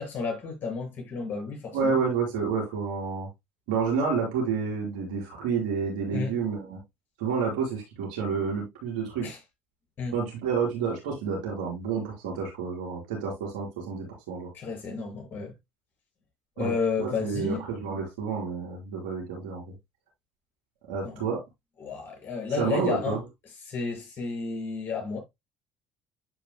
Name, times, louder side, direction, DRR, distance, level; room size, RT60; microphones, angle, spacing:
voice 1, 0.0-2.0 6.1-6.4 9.2-9.4 10.0-10.1 14.5-15.5 16.6-17.6 21.0-21.2 21.8-23.2 23.6-25.2, left 5 dB, 45° left, 6.1 m, -32 dB
voice 2, 1.7-3.3 3.7-6.8 7.2-9.3 10.1-14.5 16.6-19.7 20.9-21.4 22.6-23.2, right 5 dB, 90° right, 5.1 m, -29 dB
12.0 x 5.4 x 2.2 m
supercardioid pair, 80°, 5 cm